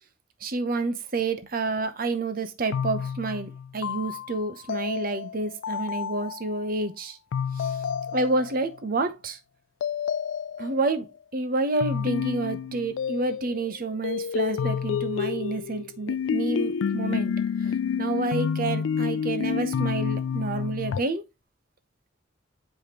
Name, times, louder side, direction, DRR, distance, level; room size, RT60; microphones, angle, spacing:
voice 1, 0.4-7.2 7.6-7.7 8.1-9.4 10.6-17.3 17.6-21.2, right 3 dB, 50° right, 0.8 m, -29 dB
sound 1, 2.7-6.6 7.3-8.8 9.8-11.0 11.8-13.7 14.0-21.0, left 7 dB, 85° left, 0.3 m, -29 dB
7.7 x 5.1 x 2.9 m
head